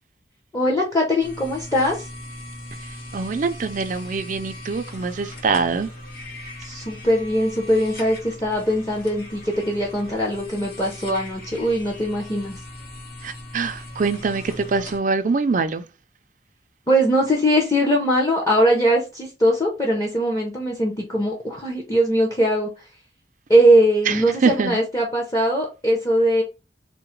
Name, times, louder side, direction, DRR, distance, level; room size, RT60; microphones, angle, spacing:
voice 1, 0.5-2.1 6.6-12.6 16.9-22.9 23.5-26.4, equal, 15° left, 0.8 m, -21 dB
sound 1, 1.2-15.0, left 1 dB, 55° left, 1.2 m, -39 dB
voice 2, 3.1-5.9 13.2-15.8 24.1-24.8, right 4 dB, 45° right, 0.4 m, -24 dB
3.8 x 2.1 x 4.4 m
head